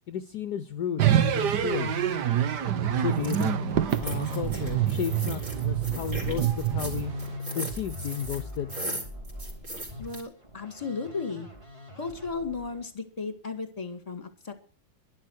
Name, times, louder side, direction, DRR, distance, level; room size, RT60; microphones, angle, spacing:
voice 1, 0.1-1.9 2.9-3.5 4.0-7.1 7.5-8.8, left 9 dB, 65° left, 12 dB, 1.3 m, -33 dB
sound 1, 1.0-7.4, right 10 dB, 65° right, 1.6 m, -26 dB
Musical instrument, 1.1-12.9, left 1 dB, 15° right, 3.4 m, -41 dB
sound 2, 3.1-3.5 3.9-10.2, right 1 dB, 40° right, 4.5 m, -38 dB
voice 2, 10.0-11.5 11.9-14.5, left 4 dB, 20° left, 9 dB, 2.0 m, -35 dB
12.0 x 11.5 x 6.5 m, 0.37 s
omnidirectional pair, 2.1 m